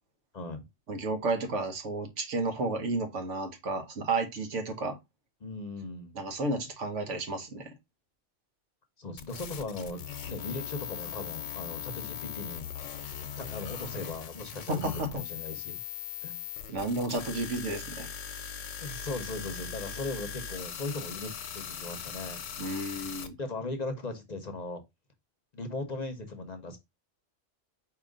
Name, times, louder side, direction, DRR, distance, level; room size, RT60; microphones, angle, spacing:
voice 1, 0.9-5.0 6.1-7.7 14.7-15.1 16.7-18.1 22.6-23.3, right 2 dB, 90° right, 1.4 m, -32 dB
voice 2, 5.4-6.1 9.0-10.0 10.3-12.7 13.3-15.8 16.2-16.4 18.8-22.4 23.4-24.8 25.5-26.8, left 2 dB, 40° left, 0.7 m, -38 dB
sound 1, 9.2-23.3, left 8 dB, 85° left, 1.0 m, -40 dB
4.9 x 2.9 x 3.7 m
omnidirectional pair, 1.2 m